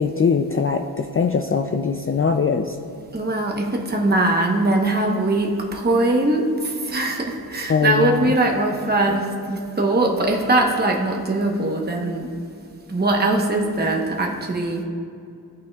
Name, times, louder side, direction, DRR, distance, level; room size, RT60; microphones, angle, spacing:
voice 1, 0.0-2.8 7.7-8.3 9.1-9.2, left 5 dB, 35° left, 5 dB, 0.4 m, -21 dB
voice 2, 3.1-12.3 12.9-14.8, right 2 dB, 25° right, 0 dB, 1.0 m, -21 dB
15.5 x 8.4 x 2.3 m, 2.4 s
wide cardioid pair, 80°, 39 cm